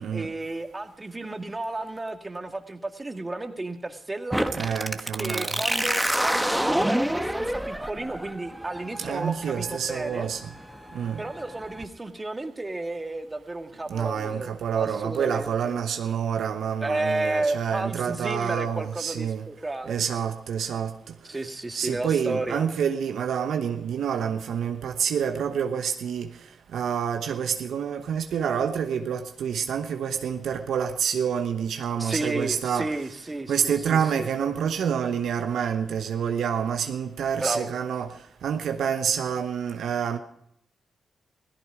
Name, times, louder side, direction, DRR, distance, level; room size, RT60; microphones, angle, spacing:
voice 1, 0.0-4.7 5.2-10.3 11.2-15.8 16.8-20.0 21.3-22.7 32.0-34.3 37.4-37.7, right 2 dB, 25° right, 1.9 m, -32 dB
sound 1, 4.3-11.8, equal, 5° right, 1.2 m, -29 dB
voice 2, 4.6-5.6 9.0-10.4 10.9-11.2 13.9-19.4 19.9-20.9 21.7-26.3 26.7-32.9 33.5-38.1 38.4-40.2, right 7 dB, 80° right, 1.0 m, -27 dB
17.0 x 14.5 x 4.8 m
supercardioid pair, 45°, 0 cm